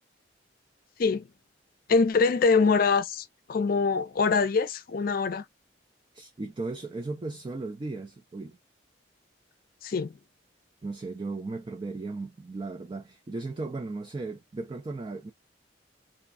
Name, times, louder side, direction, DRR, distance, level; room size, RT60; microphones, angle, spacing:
voice 1, 1.9-5.4 9.8-10.1, left 4 dB, 50° left, 0.4 m, -24 dB
voice 2, 6.1-8.6 10.8-15.3, right 3 dB, 25° right, 0.4 m, -36 dB
3.0 x 2.6 x 2.4 m
head